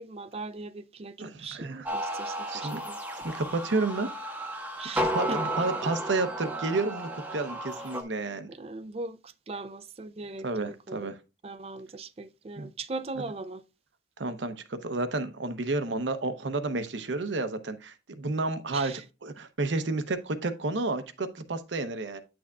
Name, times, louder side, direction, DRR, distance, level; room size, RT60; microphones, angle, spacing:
voice 1, 0.0-3.0 4.8-5.4 5.8-6.0 8.5-11.1 11.4-13.6 18.7-19.0, right 3 dB, 35° right, 0.4 m, -39 dB
voice 2, 1.2-1.9 2.5-2.8 3.2-4.1 5.0-8.5 10.4-11.1 12.6-12.7 14.2-18.9 19.2-22.2, right 3 dB, 80° right, 0.7 m, -31 dB
sound 1, 1.9-8.0, right 1 dB, 10° right, 1.0 m, -33 dB
9.5 x 6.1 x 2.3 m
head